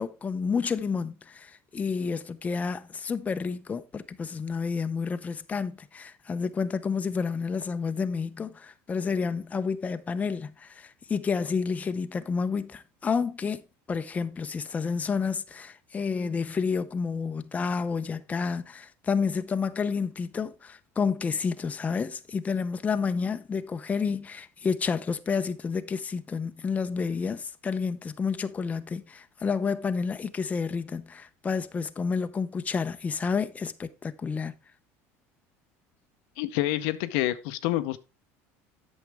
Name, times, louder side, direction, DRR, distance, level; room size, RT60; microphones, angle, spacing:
voice 1, 0.0-13.6 13.9-34.5, left 5 dB, 20° left, 0.6 m, -30 dB
voice 2, 36.4-38.0, left 15 dB, 75° left, 0.6 m, -27 dB
8.4 x 6.4 x 3.5 m
supercardioid pair, 110°, 7 cm